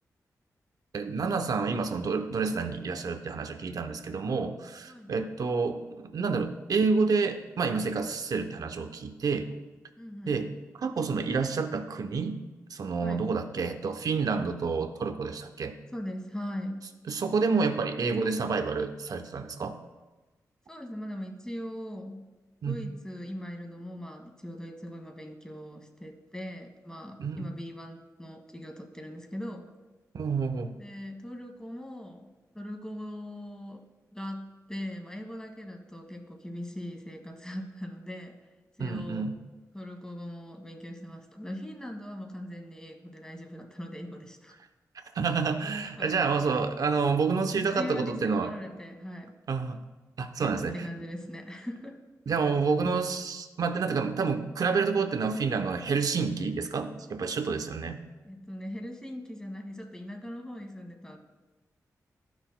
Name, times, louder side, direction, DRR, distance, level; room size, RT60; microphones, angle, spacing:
voice 1, 0.9-9.5 10.3-10.5 10.8-12.4 12.7-15.7 17.1-19.8 22.6-22.7 27.2-27.4 30.1-30.7 38.8-39.4 45.1-48.5 49.5-49.8 50.2-50.7 52.3-58.0, right 4 dB, 65° right, 7 dB, 0.7 m, -29 dB
voice 2, 4.9-5.3 10.0-10.5 13.0-13.4 15.9-16.8 20.7-22.2 22.6-29.7 30.8-33.9 34.1-38.4 38.8-39.3 39.7-44.5 46.0-46.3 47.8-49.3 50.4-52.0 58.2-61.2, equal, 10° left, 4 dB, 1.5 m, -40 dB
13.0 x 6.0 x 2.2 m, 1.2 s
cardioid pair, 50°, 7 cm